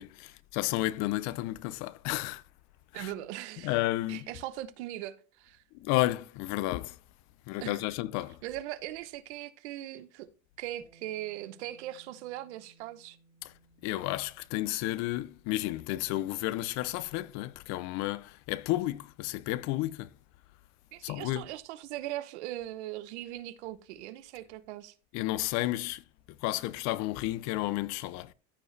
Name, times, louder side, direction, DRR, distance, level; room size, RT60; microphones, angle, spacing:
voice 1, 0.0-2.4 2.9-3.1 3.6-4.3 5.7-7.0 7.5-8.4 13.4-13.5 13.8-20.1 21.0-21.4 25.1-26.0 26.4-28.3, left 17 dB, 55° left, 0.6 m, -32 dB
voice 2, 2.9-3.8 4.1-5.6 7.6-7.9 8.4-10.3 10.6-13.2 20.9-24.9, right 14 dB, 90° right, 0.9 m, -40 dB
Bass guitar, 10.8-17.1, right 3 dB, 20° right, 2.2 m, -64 dB
14.0 x 4.8 x 3.2 m
supercardioid pair, 140°, 33 cm